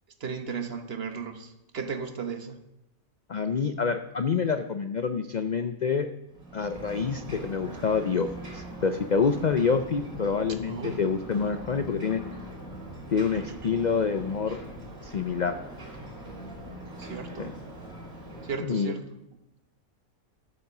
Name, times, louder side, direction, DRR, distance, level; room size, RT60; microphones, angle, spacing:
voice 1, 0.2-2.6 10.7-11.0 13.3-13.6 14.5-14.7 17.0-17.6 18.4-19.0, right 5 dB, 50° right, 7 dB, 1.2 m, -35 dB
voice 2, 3.3-6.1 6.5-12.2 13.1-14.6 15.0-15.6 17.4-17.5 18.6-18.9, left 5 dB, 55° left, 9 dB, 0.4 m, -27 dB
Ocean, 6.3-18.6, right 1 dB, 75° right, 4.2 m, -41 dB
13.5 x 8.1 x 6.0 m, 0.90 s
omnidirectional pair, 1.5 m